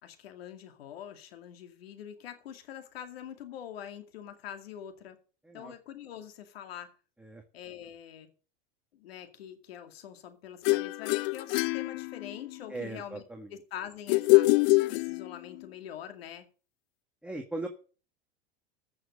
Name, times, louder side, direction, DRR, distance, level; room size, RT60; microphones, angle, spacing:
voice 1, 0.0-5.2 5.5-6.9 7.5-8.3 8.9-13.2 13.5-14.5 14.9-16.5, left 9 dB, 85° left, 2.3 m, -44 dB
sound 1, 10.6-12.6 14.1-15.6, left 24 dB, 65° left, 0.5 m, -25 dB
voice 2, 12.7-13.5 17.2-17.7, right 2 dB, 5° right, 1.7 m, -39 dB
15.5 x 6.3 x 6.5 m
supercardioid pair, 105°, 29 cm